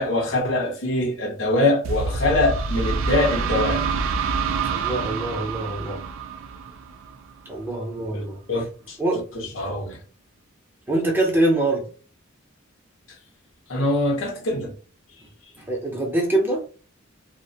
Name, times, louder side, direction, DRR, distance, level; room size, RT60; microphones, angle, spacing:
voice 1, 0.0-3.8 8.1-9.0 9.5-10.0 13.7-14.7, left 2 dB, 65° left, 0.7 m, -23 dB
sound 1, 1.8-7.5, right 4 dB, 70° right, 0.3 m, -27 dB
voice 2, 4.7-6.0 7.5-8.4 9.0-9.2 10.9-11.9 15.7-16.6, right 1 dB, 10° right, 0.5 m, -24 dB
2.4 x 2.1 x 2.7 m
head